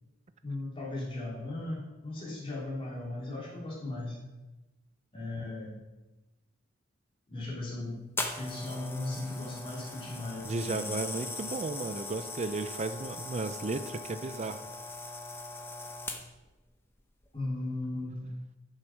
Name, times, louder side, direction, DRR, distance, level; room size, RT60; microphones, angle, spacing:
voice 1, 0.4-4.2 5.1-5.8 7.3-8.0 8.4-10.9 17.3-18.3, left 2 dB, 25° left, -5 dB, 3.4 m, -37 dB
sound 1, 8.2-16.5 17.2-17.4, left 2 dB, 10° left, 0.9 m, -40 dB
voice 2, 10.4-14.6, right 3 dB, 35° right, 10 dB, 0.4 m, -34 dB
9.7 x 7.5 x 6.2 m, 1.1 s
head